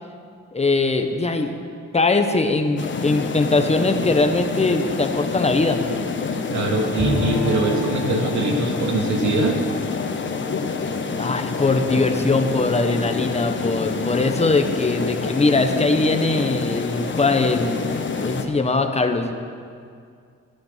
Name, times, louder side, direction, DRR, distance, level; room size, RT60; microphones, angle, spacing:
voice 1, 0.5-1.6 1.9-5.8 11.2-19.3, left 3 dB, 20° left, 6 dB, 1.3 m, -21 dB
sound 1, 2.8-18.4, left 4 dB, 40° left, 1.3 m, -27 dB
voice 2, 6.5-9.6, right 2 dB, 70° right, 1 dB, 2.5 m, -22 dB
Bowed string instrument, 7.0-10.7, left 1 dB, 15° right, 4.1 m, -31 dB
16.0 x 10.5 x 5.8 m, 2.2 s
cardioid pair, 90°, 30 cm